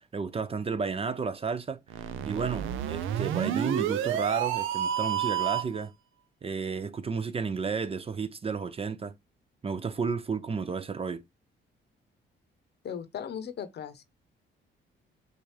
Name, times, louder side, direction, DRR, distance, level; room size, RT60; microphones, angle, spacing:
voice 1, 0.1-5.9 6.4-9.1 9.6-11.2, right 5 dB, 30° right, 0.5 m, -32 dB
sound 1, 1.9-5.8, right 10 dB, 85° right, 0.6 m, -30 dB
voice 2, 12.8-14.0, left 8 dB, 55° left, 0.8 m, -37 dB
6.5 x 2.5 x 3.1 m
cardioid pair, 90°, 20 cm